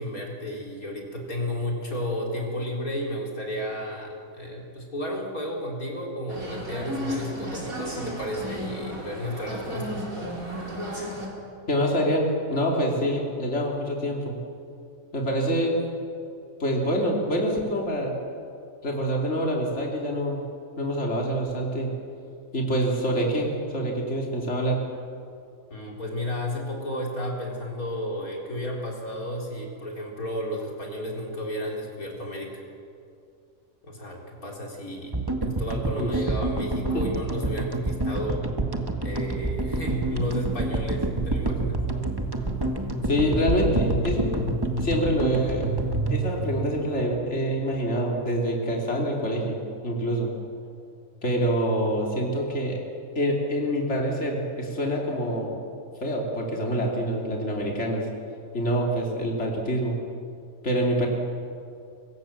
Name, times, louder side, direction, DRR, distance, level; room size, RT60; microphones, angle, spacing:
voice 1, 0.0-10.0 25.7-32.6 33.8-35.1 35.5-38.4 39.0-41.9, left 1 dB, 85° left, -1 dB, 4.3 m, -32 dB
sound 1, 6.3-11.3, equal, 75° right, 5.1 m, -34 dB
voice 2, 11.7-14.4 15.1-15.8 16.6-18.1 18.8-20.4 20.8-21.9 22.5-24.8 36.0-36.3 36.9-37.0 43.0-44.4 44.8-45.7 46.1-49.6 49.8-50.3 51.2-52.8 53.2-55.6 56.0-58.1 58.5-60.0 60.6-61.1, equal, 50° left, -1 dB, 3.5 m, -26 dB
sound 2, 35.1-47.5, right 2 dB, 15° right, 1.8 m, -28 dB
sound 3, 39.2-47.0, equal, 60° right, 2.9 m, -34 dB
25.0 x 24.0 x 7.4 m, 2.5 s
omnidirectional pair, 1.5 m